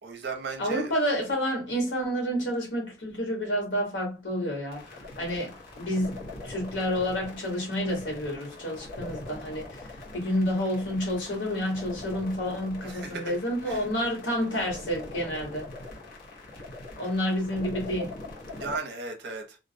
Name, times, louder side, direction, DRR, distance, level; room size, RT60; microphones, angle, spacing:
voice 1, 0.0-0.9 12.8-13.4 13.6-13.9 18.6-19.6, right 3 dB, 60° right, 0.6 m, -36 dB
voice 2, 0.6-6.2 6.4-9.9 10.1-15.7 17.0-18.1, equal, 80° left, 1.2 m, -29 dB
sound 1, 4.7-18.8, left 2 dB, 50° left, 0.9 m, -43 dB
2.3 x 2.0 x 2.6 m
head